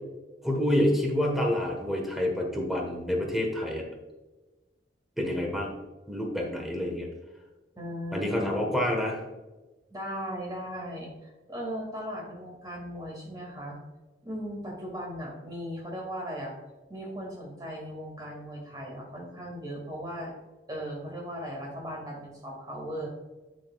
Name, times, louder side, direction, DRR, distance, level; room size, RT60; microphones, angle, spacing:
voice 1, 0.4-3.9 5.2-5.8 6.1-7.1 8.1-9.2, left 1 dB, ahead, 0 dB, 1.2 m, -28 dB
voice 2, 7.8-8.8 9.9-13.8 14.2-16.5 16.9-20.3 20.7-23.1, equal, 20° right, -1 dB, 2.0 m, -37 dB
8.4 x 6.6 x 2.3 m, 1.2 s
head